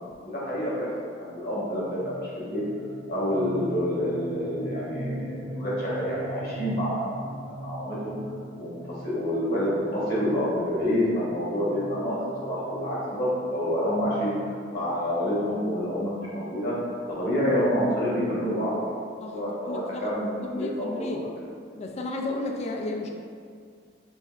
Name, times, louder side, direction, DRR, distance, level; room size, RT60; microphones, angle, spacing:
voice 1, 0.2-0.9 1.1-2.6 3.1-7.1 7.5-8.1 8.6-14.3 14.7-16.8 17.2-18.9 19.3-21.2, equal, 55° left, -8 dB, 1.4 m, -28 dB
sound 1, 1.6-17.2, equal, 85° right, 0.6 m, -41 dB
voice 2, 19.2-21.2 21.7-23.1, left 2 dB, 35° left, 2 dB, 0.3 m, -33 dB
5.8 x 2.5 x 2.5 m, 2.2 s
head